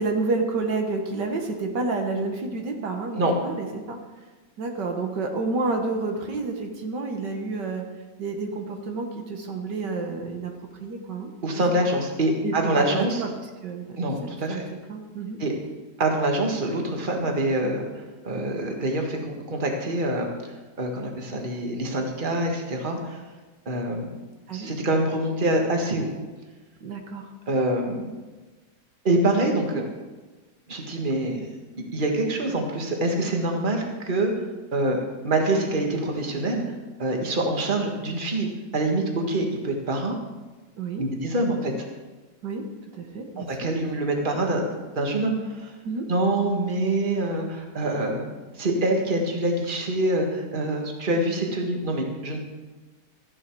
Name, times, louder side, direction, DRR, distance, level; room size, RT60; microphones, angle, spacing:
voice 1, 0.0-4.0 4.6-7.8 8.2-10.5 10.8-11.3 11.7-11.8 12.4-13.3 13.6-14.0 14.2-14.6 14.9-15.4 24.5-24.7 26.8-27.2 40.8-41.1 42.4-42.6 42.9-43.7 45.8-46.1, right 3 dB, 75° right, 3 dB, 1.9 m, -29 dB
voice 2, 11.4-13.2 14.0-14.6 15.4-15.5 16.0-20.5 20.8-23.2 23.7-24.2 24.5-26.1 27.5-28.0 29.0-29.8 30.7-31.4 31.9-34.3 34.7-36.6 37.0-38.5 38.7-40.2 41.0-41.9 43.4-44.7 45.0-45.7 46.1-48.3 48.6-52.4, right 1 dB, 30° right, 2 dB, 1.7 m, -25 dB
14.0 x 11.0 x 4.7 m, 1.2 s
omnidirectional pair, 1.9 m